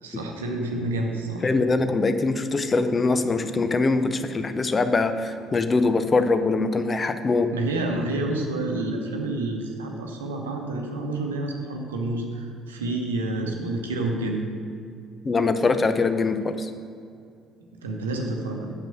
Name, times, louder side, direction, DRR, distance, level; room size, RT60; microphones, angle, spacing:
voice 1, 0.0-1.5 7.5-14.5 17.7-18.7, right 2 dB, 75° right, 2 dB, 0.8 m, -29 dB
voice 2, 1.4-7.5 15.2-16.7, left 3 dB, 30° left, 10 dB, 0.5 m, -23 dB
6.7 x 6.1 x 6.4 m, 2.4 s
figure-of-eight pair, 50°, 0 cm